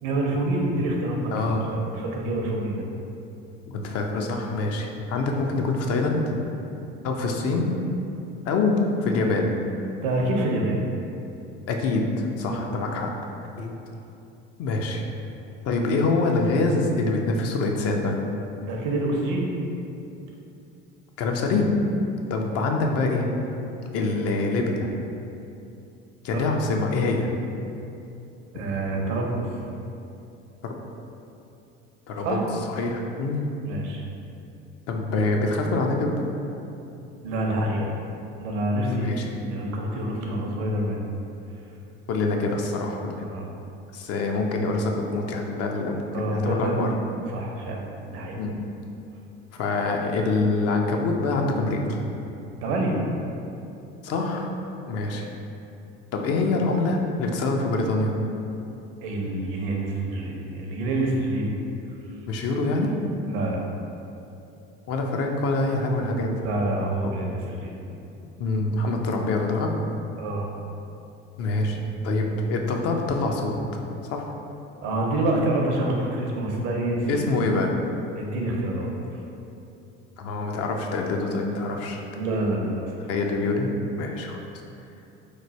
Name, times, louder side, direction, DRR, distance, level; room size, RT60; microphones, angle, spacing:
voice 1, 0.0-2.8 10.0-10.8 12.5-12.7 18.6-19.5 26.3-26.5 28.5-29.5 32.2-32.4 33.6-34.0 37.2-37.9 38.4-41.0 43.2-43.5 46.1-47.0 47.3-47.8 48.1-48.4 52.6-53.0 59.0-61.5 63.3-63.6 66.4-67.7 70.2-70.5 74.8-77.2 78.1-79.2 82.1-83.0, right 1 dB, 75° right, 0 dB, 0.7 m, -27 dB
voice 2, 1.3-1.7 3.7-6.4 7.0-7.7 8.5-9.5 11.7-13.1 13.6-13.8 14.6-15.0 15.7-18.2 21.2-21.8 22.3-23.3 23.9-24.9 26.2-27.3 28.5-28.6 30.6-30.7 32.1-32.4 32.7-33.4 34.9-36.1 38.9-39.3 42.1-43.3 43.9-46.9 48.3-48.5 49.6-52.0 54.0-54.5 54.9-55.3 56.1-58.2 62.3-63.0 64.9-66.4 68.4-69.7 71.4-71.8 72.0-74.2 77.1-77.7 80.2-82.0 83.1-83.7 83.9-84.4, left 3 dB, 55° left, 2 dB, 0.5 m, -25 dB
3.1 x 2.2 x 4.1 m, 2.8 s
hypercardioid pair, 75°, 29 cm